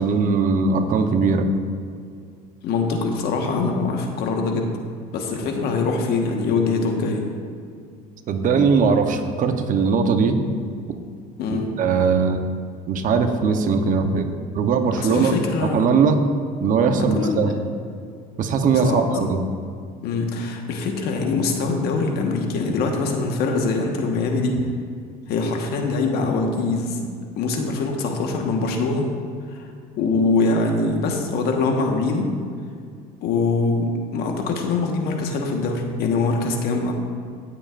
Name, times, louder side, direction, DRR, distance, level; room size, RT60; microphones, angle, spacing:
voice 1, 0.0-1.5 8.3-10.4 11.5-12.4 12.9-14.3 14.5-15.3 15.6-16.2 16.6-17.5 18.4-19.4, right 5 dB, 50° right, 6 dB, 0.9 m, -20 dB
voice 2, 2.6-4.7 5.1-7.2 11.4-11.7 15.0-15.8 17.1-17.7 18.8-19.3 20.0-24.6 25.3-27.1 27.4-29.0 29.5-29.7 30.0-32.3 33.2-36.9, left 3 dB, 65° left, 2 dB, 1.4 m, -23 dB
16.5 x 7.5 x 2.5 m, 2.2 s
supercardioid pair, 105°, 18 cm